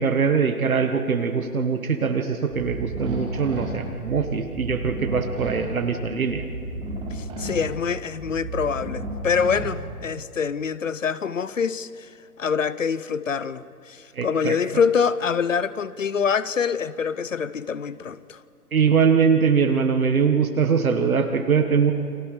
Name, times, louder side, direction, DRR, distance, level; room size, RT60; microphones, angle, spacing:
voice 1, 0.0-6.4 14.1-14.6 18.7-21.9, right 6 dB, 60° right, 6 dB, 1.8 m, -22 dB
sound 1, 2.5-10.2, right 1 dB, 10° right, 4.3 m, -33 dB
voice 2, 7.1-12.1 12.4-18.4, left 6 dB, 55° left, 17 dB, 0.8 m, -25 dB
29.5 x 23.5 x 5.0 m, 2.4 s
figure-of-eight pair, 150°, 48 cm